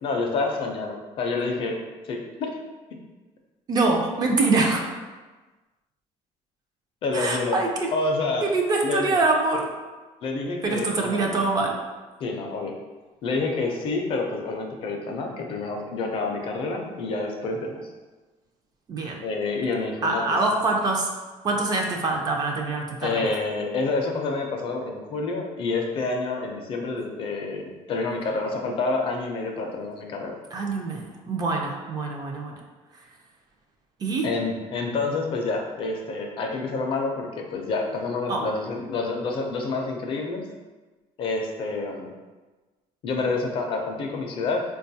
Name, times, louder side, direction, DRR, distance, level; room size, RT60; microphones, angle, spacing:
voice 1, 0.0-1.8 2.1-2.6 7.0-7.6 7.9-8.5 8.8-9.1 10.2-11.2 12.2-12.7 13.2-17.8 19.2-20.2 23.0-30.4 34.2-40.4 41.2-42.1 43.0-44.6, left 3 dB, 40° left, 2 dB, 0.4 m, -28 dB
voice 2, 3.7-4.9 7.1-7.9 8.4-9.7 10.6-11.8 18.9-19.2 20.0-21.1 21.4-23.2 30.5-32.6 34.0-34.3 38.3-38.4, right 3 dB, 30° right, 1 dB, 0.4 m, -24 dB
4.4 x 2.2 x 2.7 m, 1.2 s
cardioid pair, 175°, 13 cm